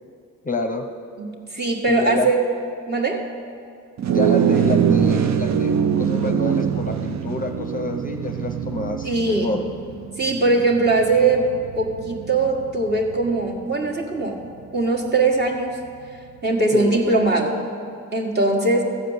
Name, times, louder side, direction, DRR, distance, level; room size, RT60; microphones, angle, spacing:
voice 1, 0.4-0.9 1.9-2.3 4.1-9.6 16.7-16.9, left 2 dB, 25° left, 5 dB, 0.7 m, -28 dB
voice 2, 1.5-2.4 2.9-3.3 9.0-9.5 10.2-11.5 11.8-14.4 14.7-15.8 16.4-17.6 18.1-18.8, right 3 dB, 30° right, 0 dB, 1.8 m, -20 dB
sound 1, 4.0-13.6, right 7 dB, 60° right, 0.6 m, -23 dB
14.0 x 5.0 x 8.1 m, 2.5 s
cardioid pair, 70°, 32 cm